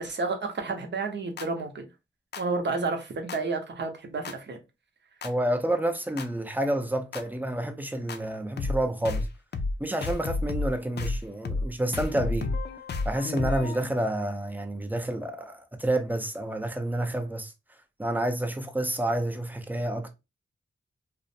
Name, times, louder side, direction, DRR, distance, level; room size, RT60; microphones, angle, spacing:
voice 1, 0.0-1.9 2.4-4.6, right 3 dB, 60° right, 0.7 m, -31 dB
sound 1, 1.4-1.5 2.3-2.4 3.3-3.4 4.2-4.3 5.2-5.3 6.2-6.3 7.1-7.2 8.1-8.2 8.6-8.8 9.0-9.3 9.5-9.7 10.0-10.7 11.0-11.2 11.4-11.7 11.9-13.8, left 3 dB, 55° left, 0.4 m, -30 dB
voice 2, 5.2-9.3 9.8-12.5 13.0-17.5 18.0-20.1, right 1 dB, 10° right, 0.5 m, -29 dB
2.4 x 2.0 x 2.6 m
wide cardioid pair, 80°, 21 cm